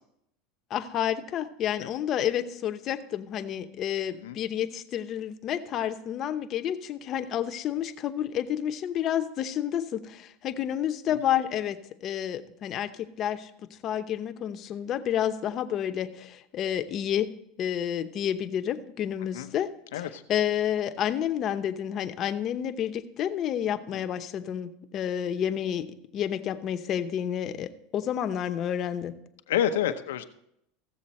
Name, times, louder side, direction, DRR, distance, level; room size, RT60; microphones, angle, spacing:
voice 1, 0.7-13.5 13.8-17.3 17.6-29.1, left 10 dB, 40° left, 9 dB, 0.8 m, -30 dB
voice 2, 29.5-30.2, left 10 dB, 90° left, 9 dB, 0.8 m, -28 dB
15.5 x 7.2 x 4.3 m, 0.78 s
supercardioid pair, 130°, 0 cm